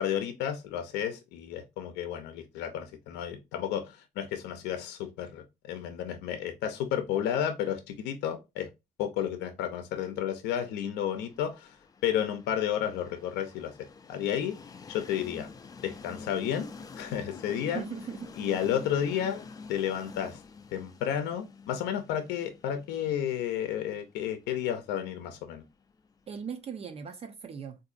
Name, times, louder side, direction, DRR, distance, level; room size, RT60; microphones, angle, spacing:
voice 1, 0.0-8.7 9.0-11.8 12.0-13.7 14.1-14.6 14.9-15.5 15.8-16.7 17.0-17.8 18.4-19.4 19.7-20.4 20.7-25.6, left 9 dB, 90° left, 0.6 m, -32 dB
Train, 11.0-26.8, left 4 dB, 20° left, 0.4 m, -48 dB
voice 2, 17.7-18.3 26.3-27.8, right 6 dB, 35° right, 0.5 m, -38 dB
3.7 x 2.6 x 2.5 m
cardioid pair, 110°, 17 cm